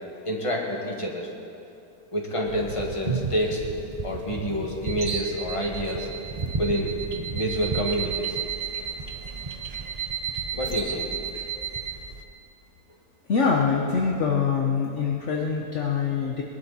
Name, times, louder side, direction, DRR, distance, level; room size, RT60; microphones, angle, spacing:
voice 1, 0.3-1.3 2.1-3.6 4.0-6.1 6.6-6.9 7.3-8.4 10.5-11.1, equal, 20° left, -1 dB, 1.9 m, -28 dB
sound 1, 2.5-12.2, right 4 dB, 35° right, 0.6 m, -35 dB
sound 2, 4.8-11.9, right 9 dB, 60° right, 2.1 m, -34 dB
voice 2, 13.3-16.4, left 5 dB, 50° left, 0 dB, 1.2 m, -24 dB
21.5 x 12.0 x 4.3 m, 2.7 s
omnidirectional pair, 1.8 m